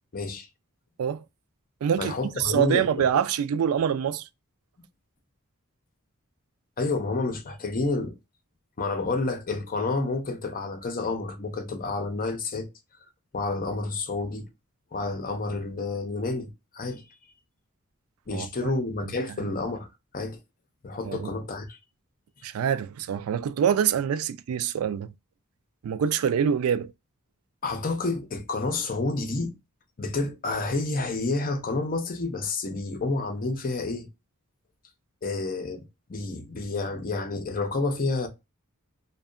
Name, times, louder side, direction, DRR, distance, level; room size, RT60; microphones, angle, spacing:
voice 1, 0.1-0.5 2.0-2.9 6.8-8.1 8.8-12.7 13.3-14.5 14.9-16.5 16.7-17.0 18.3-19.9 20.1-20.4 20.8-21.8 27.6-29.5 30.0-34.1 35.2-38.3, left 3 dB, 40° left, 0.6 m, -29 dB
voice 2, 1.8-4.2 18.3-18.7 19.0-19.1 21.0-21.3 22.4-25.1 25.8-26.9, right 8 dB, 75° right, 0.3 m, -25 dB
2.7 x 2.2 x 2.3 m
head